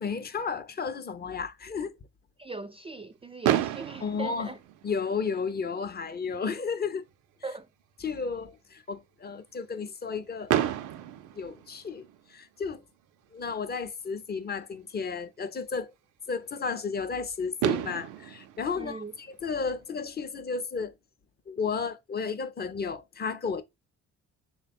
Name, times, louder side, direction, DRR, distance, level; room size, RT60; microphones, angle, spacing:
voice 1, 0.0-1.9 4.0-4.5 4.8-7.1 8.0-10.8 11.3-12.8 13.3-15.9 16.3-20.9 21.5-23.6, left 5 dB, 35° left, 0.5 m, -33 dB
voice 2, 2.4-4.6 7.4-7.7 18.8-19.1, right 3 dB, 20° right, 0.3 m, -40 dB
Fireworks, 3.4-5.5 6.3-6.4 6.6-6.8 7.1-7.2 10.5-12.3 14.0-14.1 17.1-17.2 17.6-19.9, right 11 dB, 90° right, 0.5 m, -31 dB
3.6 x 2.2 x 4.1 m
cardioid pair, 90°, 30 cm